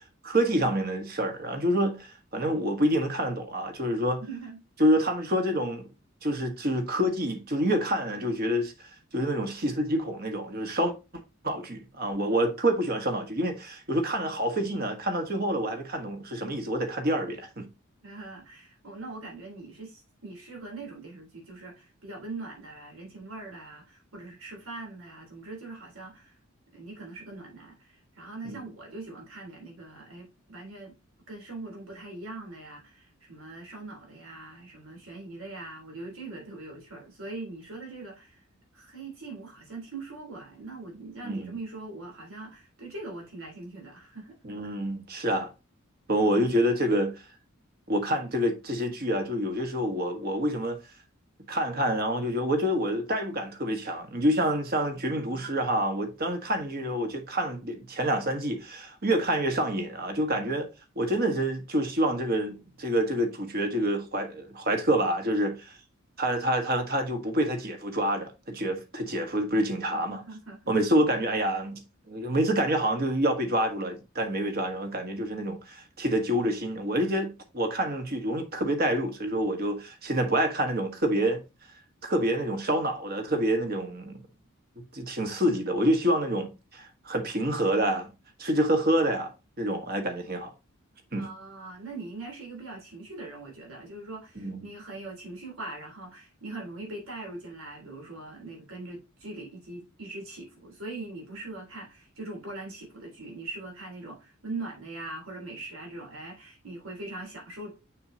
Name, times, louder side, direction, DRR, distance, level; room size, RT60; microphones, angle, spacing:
voice 1, 0.2-4.2 4.8-5.9 6.2-8.7 9.1-10.9 11.4-17.7 28.4-28.6 41.2-41.6 44.4-45.5 46.1-47.1 47.9-50.8 51.5-60.7 61.0-65.7 66.2-70.2 70.7-71.8 72.1-81.4 82.0-84.2 84.9-88.1 88.4-89.3 89.6-90.5 91.1-91.3 94.4-94.6, right 1 dB, 45° right, 1.5 m, -27 dB
voice 2, 4.3-4.6 18.0-26.4 26.7-31.0 31.3-38.4 38.7-44.3 54.9-55.5 69.9-70.7 91.2-107.7, right 2 dB, 90° right, 3.7 m, -41 dB
6.7 x 6.3 x 2.8 m
head